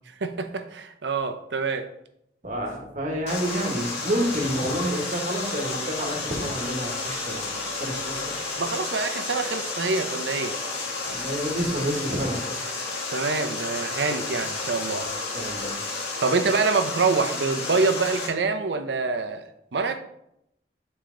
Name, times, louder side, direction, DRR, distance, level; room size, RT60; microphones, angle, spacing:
voice 1, 0.2-1.9 8.6-10.6 13.1-15.1 16.2-20.0, right 4 dB, 85° right, 8 dB, 0.6 m, -26 dB
voice 2, 2.4-8.3 11.0-12.4 14.9-15.1 15.3-15.8, equal, 45° right, 0 dB, 1.3 m, -29 dB
Water, 3.3-18.3, left 3 dB, 80° left, 1.7 m, -31 dB
sound 1, 3.4-9.5, equal, 30° right, 1.3 m, -48 dB
7.1 x 4.4 x 3.8 m, 0.78 s
head